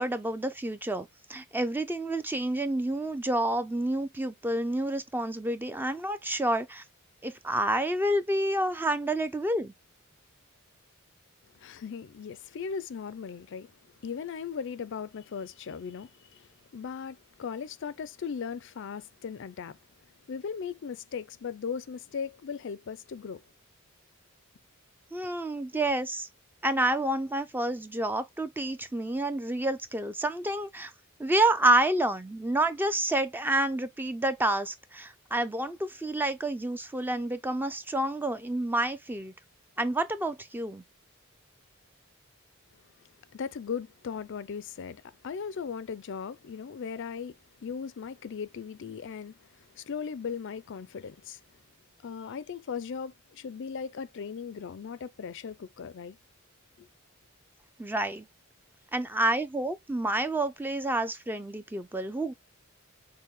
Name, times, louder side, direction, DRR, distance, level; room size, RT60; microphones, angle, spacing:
voice 1, 0.0-6.8 7.2-9.7 25.1-26.3 26.6-30.9 31.2-39.3 39.8-40.8 57.8-58.3 58.9-62.3, right 1 dB, 10° right, 0.5 m, -29 dB
voice 2, 11.5-13.7 14.0-19.8 20.3-23.4 43.3-51.4 52.0-56.2 56.8-56.9, left 6 dB, 60° left, 0.4 m, -38 dB
6.4 x 2.2 x 3.6 m
head